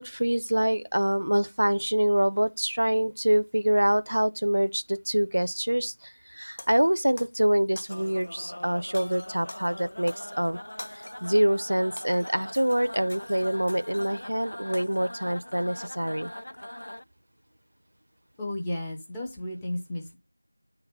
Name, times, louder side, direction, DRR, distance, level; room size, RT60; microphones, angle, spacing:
voice 1, 0.0-10.6 10.9-16.3, right 1 dB, 60° right, 0.5 m, -25 dB
Shatter, 6.6-7.4 7.8-8.4 8.9-11.3 11.7-14.3 14.7-15.1, left 1 dB, 40° left, 0.8 m, -46 dB
sound 1, 7.9-17.0, left 1 dB, 55° left, 0.4 m, -42 dB
voice 2, 18.4-20.1, left 1 dB, 5° left, 0.5 m, -33 dB
9.6 x 3.9 x 5.5 m
figure-of-eight pair, 175°, 0 cm